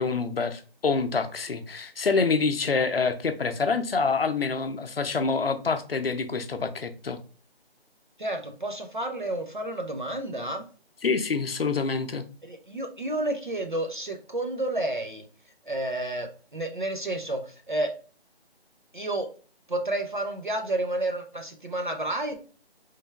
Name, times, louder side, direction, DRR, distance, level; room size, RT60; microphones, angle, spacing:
voice 1, 0.0-7.2 11.0-12.2, left 4 dB, 65° left, 9 dB, 0.6 m, -26 dB
voice 2, 8.2-10.6 12.4-15.2 15.7-17.9 18.9-19.3 19.7-22.4, right 1 dB, 50° right, 5 dB, 0.5 m, -30 dB
3.8 x 3.2 x 2.3 m, 0.39 s
figure-of-eight pair, 180°, 32 cm